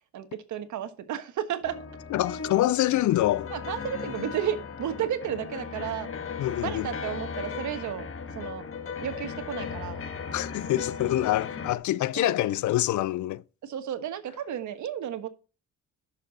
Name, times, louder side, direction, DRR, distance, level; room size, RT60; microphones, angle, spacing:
voice 1, 0.1-1.8 3.5-6.1 6.6-8.1 8.3-8.7 9.0-10.0 12.1-12.3 13.6-15.3, right 10 dB, 75° right, 1.4 m, -33 dB
sound 1, 1.6-11.8, left 5 dB, 45° left, 1.5 m, -37 dB
voice 2, 2.1-3.5 6.4-6.9 10.3-13.4, left 14 dB, 70° left, 0.6 m, -26 dB
11.0 x 6.9 x 4.1 m
cardioid pair, 90°, 30 cm